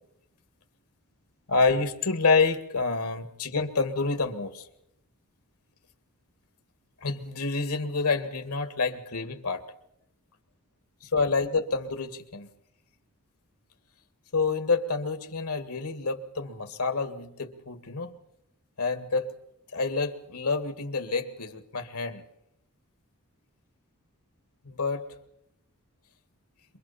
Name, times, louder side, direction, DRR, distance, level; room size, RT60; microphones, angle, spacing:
voice 1, 1.5-4.7 7.0-9.6 11.0-12.5 14.3-18.2 18.8-19.3 19.7-22.2 24.6-25.0, left 4 dB, 85° left, 9 dB, 2.1 m, -28 dB
27.5 x 23.5 x 4.4 m, 0.78 s
head